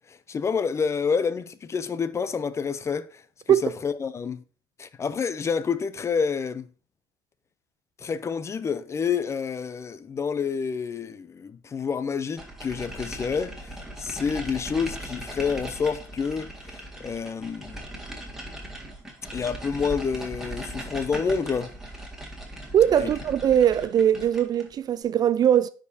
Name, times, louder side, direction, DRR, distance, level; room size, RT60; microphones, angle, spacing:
voice 1, 0.1-4.4 4.8-6.7 8.0-17.8 19.3-21.7 23.0-23.1, left 6 dB, 25° left, 0.5 m, -28 dB
sound 1, 12.4-24.7, right 1 dB, 5° right, 1.8 m, -39 dB
voice 2, 22.7-25.7, right 9 dB, 35° right, 0.4 m, -20 dB
10.0 x 4.9 x 2.7 m
supercardioid pair, 95°, 12 cm